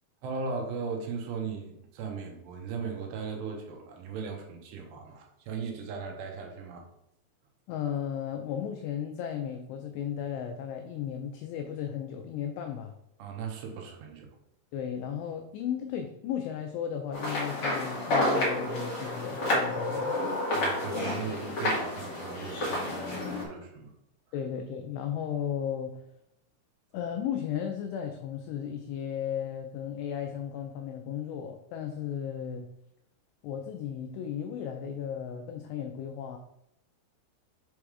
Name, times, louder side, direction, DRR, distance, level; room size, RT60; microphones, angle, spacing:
voice 1, 0.2-6.9 13.2-14.4 20.5-23.9, right 5 dB, 75° right, 2 dB, 2.8 m, -37 dB
voice 2, 7.7-12.9 14.7-20.2 24.3-25.9 26.9-32.7 33.4-36.4, left 8 dB, 90° left, 5 dB, 2.4 m, -35 dB
sound 1, 17.1-23.4, left 1 dB, 40° left, 2.0 m, -30 dB
7.5 x 3.5 x 4.7 m, 0.81 s
omnidirectional pair, 5.5 m